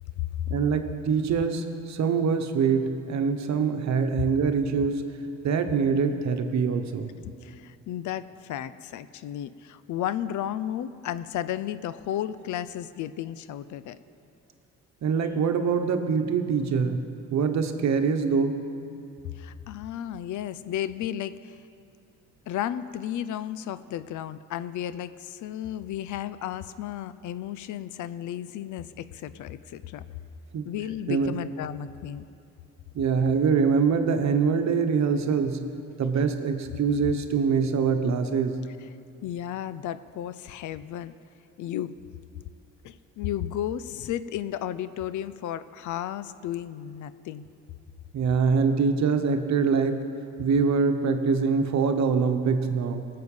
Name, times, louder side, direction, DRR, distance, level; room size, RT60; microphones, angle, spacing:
voice 1, 0.5-5.0 5.4-7.1 15.0-17.0 17.3-18.6 30.5-30.6 31.1-31.3 32.9-35.6 36.0-38.6 48.1-50.0 50.4-53.1, right 5 dB, 65° right, 7 dB, 1.1 m, -24 dB
voice 2, 7.2-14.0 19.4-21.6 22.5-30.0 30.6-32.3 39.2-41.1 41.6-42.0 42.8-47.5, left 11 dB, 75° left, 15 dB, 0.6 m, -33 dB
19.0 x 7.8 x 5.5 m, 2.5 s
cardioid pair, 90°, 30 cm